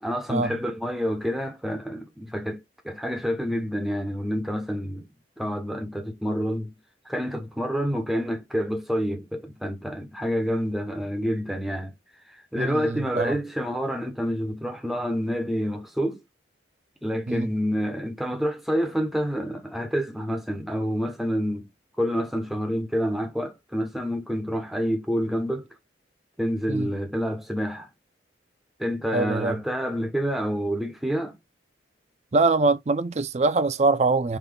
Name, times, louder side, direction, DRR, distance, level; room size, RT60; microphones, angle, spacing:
voice 1, 0.0-2.6 2.8-5.1 5.4-6.8 7.1-11.9 12.5-16.2 17.0-21.7 22.0-25.7 26.4-27.9 28.8-31.4, equal, ahead, 1.0 m, -28 dB
voice 2, 12.6-13.4 17.3-17.5 26.7-26.9 29.1-29.6 32.3-34.4, right 3 dB, 35° right, 0.5 m, -23 dB
5.1 x 4.1 x 2.3 m
head